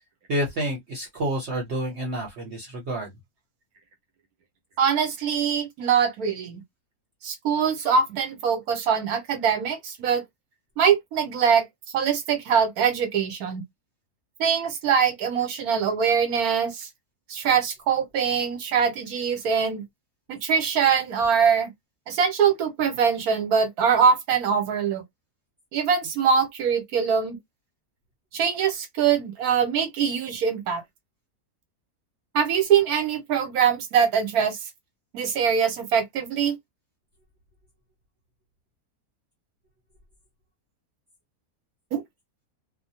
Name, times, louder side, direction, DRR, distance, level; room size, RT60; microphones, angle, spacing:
voice 1, 0.3-3.1, right 1 dB, 55° right, 1.0 m, -29 dB
voice 2, 4.8-6.6 7.2-10.2 10.8-11.7 11.9-13.6 14.4-16.9 17.3-19.8 20.3-21.7 22.1-25.0 25.7-27.4 28.3-30.8 32.3-34.6 35.1-36.6 41.9-42.0, right 7 dB, 80° right, 1.3 m, -23 dB
2.4 x 2.2 x 2.7 m
omnidirectional pair, 1.6 m